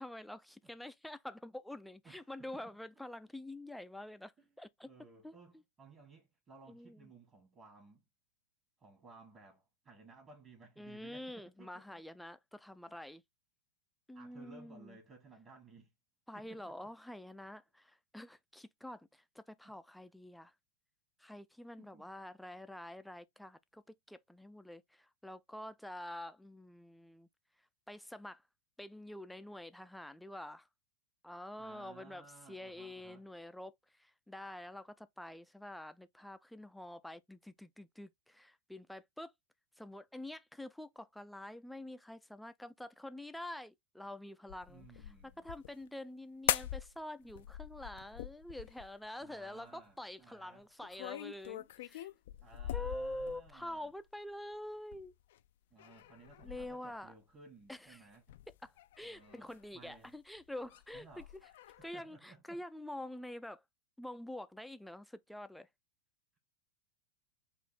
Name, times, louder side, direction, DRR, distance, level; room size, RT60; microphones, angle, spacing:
voice 1, 0.0-4.9 5.2-5.3 6.7-7.1 10.8-13.2 14.1-15.0 16.3-20.5 21.2-23.8 24.1-27.3 27.9-28.4 28.8-30.7 31.2-39.3 39.8-52.1 52.7-55.1 56.4-57.1 57.7-58.1 58.6-61.2 61.8-63.6 64.0-65.7, left 1 dB, ahead, 0.4 m, -47 dB
voice 2, 2.0-2.7 4.4-4.5 4.8-8.0 8.8-12.0 12.9-13.0 14.1-15.9 16.3-16.8 19.6-19.7 21.8-22.1 31.6-33.2 44.7-45.4 49.2-50.7 52.4-53.9 55.7-58.4 59.0-60.1 60.9-62.6, right 3 dB, 30° right, 1.7 m, -58 dB
sound 1, 44.5-45.8 46.5-47.0 47.3-49.1 50.8-53.7 54.9-55.4 55.8-57.0 58.1-60.1 60.4-61.9, left 13 dB, 65° left, 0.4 m, -42 dB
4.1 x 2.7 x 4.0 m
hypercardioid pair, 105°, 0 cm